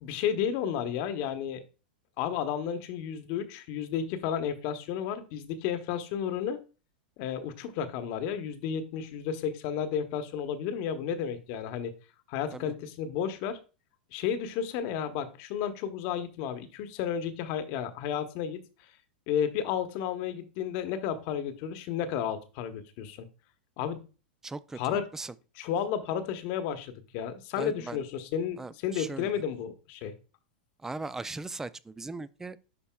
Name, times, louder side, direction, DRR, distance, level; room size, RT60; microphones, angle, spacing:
voice 1, 0.0-1.6 2.2-6.6 7.2-11.9 12.3-13.6 14.1-18.6 19.3-23.3 23.8-24.1 24.7-25.1 25.6-30.1, left 8 dB, 50° left, 1.0 m, -32 dB
voice 2, 24.4-25.3 27.6-28.0 28.6-29.4 30.8-32.6, right 3 dB, 10° right, 0.3 m, -39 dB
11.5 x 4.0 x 2.3 m
hypercardioid pair, 115°, 5 cm